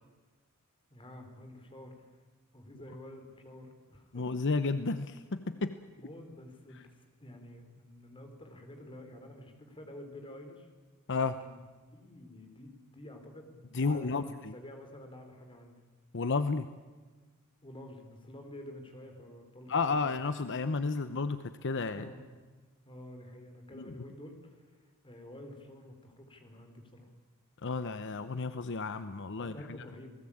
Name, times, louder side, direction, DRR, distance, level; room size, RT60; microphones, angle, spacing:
voice 1, 0.9-2.1 2.5-4.3 6.0-10.7 11.4-11.6 11.9-15.8 17.6-20.1 21.9-22.3 22.8-27.1 29.4-30.1, left 1 dB, 25° left, 5 dB, 4.2 m, -49 dB
voice 2, 4.1-5.8 11.1-11.4 13.7-14.5 16.1-16.7 19.7-22.1 23.7-23.9 27.6-29.7, left 4 dB, 55° left, 11 dB, 0.8 m, -32 dB
28.5 x 19.0 x 8.7 m, 1.4 s
head